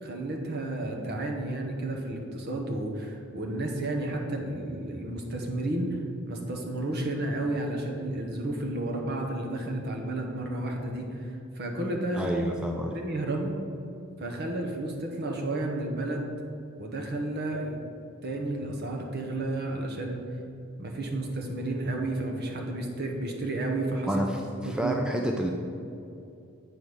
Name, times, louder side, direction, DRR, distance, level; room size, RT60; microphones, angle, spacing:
voice 1, 0.0-6.0 6.3-12.3 12.9-13.5 14.2-16.3 16.8-17.8 18.2-20.3 20.8-24.3 24.6-25.0, right 2 dB, 50° right, 2 dB, 1.0 m, -32 dB
voice 2, 12.2-12.9 24.1-25.5, equal, 5° right, 1 dB, 0.4 m, -29 dB
8.1 x 3.6 x 6.2 m, 2.6 s
head